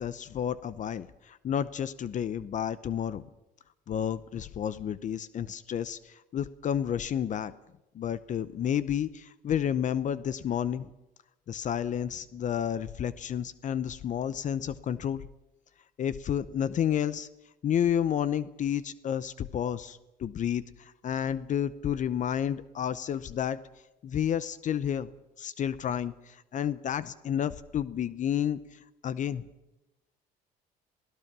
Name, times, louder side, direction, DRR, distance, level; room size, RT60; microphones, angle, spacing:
voice 1, 0.0-3.3 3.9-7.5 7.9-10.9 11.5-15.3 16.0-17.3 17.6-23.6 24.0-25.1 25.4-29.4, left 9 dB, 45° left, 16 dB, 0.7 m, -31 dB
27.5 x 17.5 x 6.1 m, 0.98 s
cardioid pair, 110°, 17 cm